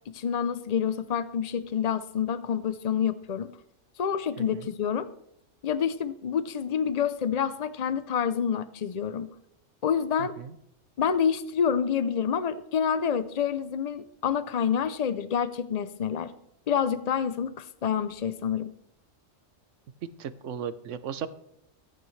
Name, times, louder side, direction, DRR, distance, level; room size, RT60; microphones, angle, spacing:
voice 1, 0.1-3.6 4.0-5.1 5.6-9.3 9.8-10.4 11.0-16.3 16.7-18.7, left 7 dB, 60° left, 13 dB, 0.4 m, -28 dB
voice 2, 10.2-10.5 20.2-21.3, right 8 dB, 70° right, 13 dB, 1.1 m, -36 dB
25.0 x 9.1 x 3.2 m, 0.75 s
omnidirectional pair, 1.3 m